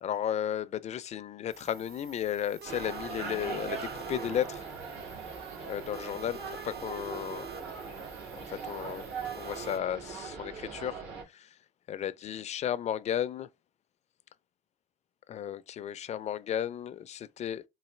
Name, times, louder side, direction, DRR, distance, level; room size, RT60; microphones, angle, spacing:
voice 1, 0.0-4.6 5.6-7.5 8.5-11.6 11.9-13.5 15.3-17.6, left 10 dB, 40° left, 0.4 m, -34 dB
sound 1, 1.5-9.8, right 7 dB, 65° right, 0.9 m, -48 dB
sound 2, 2.6-11.2, right 5 dB, 85° right, 1.8 m, -40 dB
3.9 x 2.7 x 3.1 m
cardioid pair, 110°, 17 cm